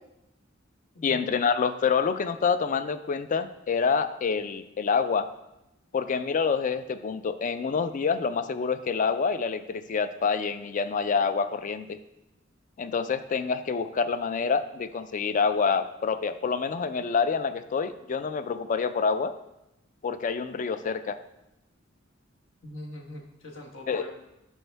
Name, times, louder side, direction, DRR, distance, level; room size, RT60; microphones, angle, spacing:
voice 1, 1.0-5.3 5.9-12.0 12.8-19.3 20.0-21.2 23.9-24.1, left 5 dB, 40° left, 12 dB, 0.4 m, -27 dB
voice 2, 22.6-24.1, left 1 dB, 70° left, 0 dB, 1.2 m, -42 dB
10.5 x 4.5 x 3.4 m, 0.90 s
head